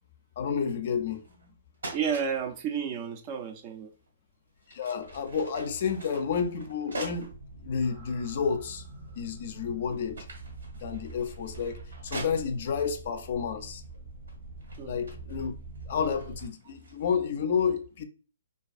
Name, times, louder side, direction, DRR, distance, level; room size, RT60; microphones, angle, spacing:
voice 1, 0.4-1.5 4.7-7.3 7.6-10.2 10.8-13.8 14.8-15.6 15.9-18.0, left 6 dB, 50° left, 0.4 m, -30 dB
sound 1, 1.1-1.5 1.8-2.3 3.9-4.1 4.6-7.4 8.0-8.1 8.8-9.3 9.7-12.8 13.7-14.0 14.3-17.3, right 2 dB, 90° right, 1.4 m, -44 dB
voice 2, 1.9-3.9 14.8-15.0, right 7 dB, 30° right, 0.3 m, -31 dB
sound 2, 7.3-16.5, right 3 dB, 60° right, 0.8 m, -45 dB
2.5 x 2.4 x 2.4 m
hypercardioid pair, 155°, 0 cm